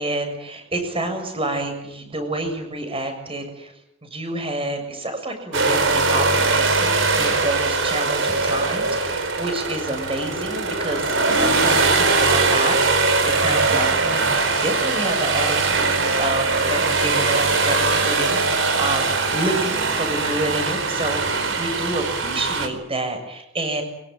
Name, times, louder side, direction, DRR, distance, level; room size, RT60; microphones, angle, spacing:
voice 1, 0.0-3.7 4.0-6.9 7.2-14.2 14.6-23.8, right 1 dB, 30° right, 7 dB, 7.1 m, -28 dB
sound 1, 5.5-22.7, right 3 dB, 70° right, 4.8 m, -21 dB
24.5 x 24.0 x 9.3 m, 0.82 s
head